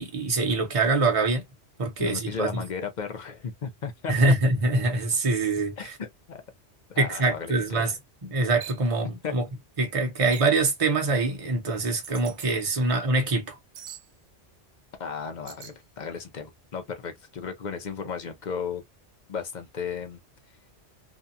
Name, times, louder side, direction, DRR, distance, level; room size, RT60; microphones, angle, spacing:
voice 1, 0.0-1.4 1.8-2.6 4.1-6.0 7.0-8.0 8.2-9.4 9.8-13.6, right 3 dB, 30° right, 0.8 m, -24 dB
voice 2, 2.0-4.1 5.8-6.4 6.9-7.8 9.2-9.3 15.0-18.8 19.3-20.2, left 6 dB, 50° left, 0.6 m, -35 dB
sound 1, 8.6-8.9 10.3-10.6 12.0-12.5 13.7-14.1 15.5-15.8, right 9 dB, 85° right, 1.0 m, -42 dB
2.7 x 2.2 x 2.5 m
omnidirectional pair, 1.2 m